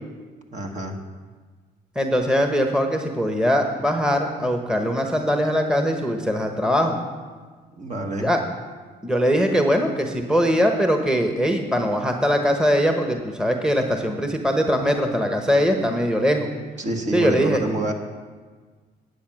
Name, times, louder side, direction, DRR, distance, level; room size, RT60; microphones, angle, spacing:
voice 1, 0.5-1.0 7.8-8.3 16.8-17.9, right 2 dB, 40° right, 3 dB, 1.5 m, -27 dB
voice 2, 1.9-7.0 8.2-8.4 9.0-16.5 17.1-17.6, equal, 5° right, 4 dB, 1.2 m, -21 dB
10.0 x 8.2 x 6.1 m, 1.5 s
supercardioid pair, 70°, 18 cm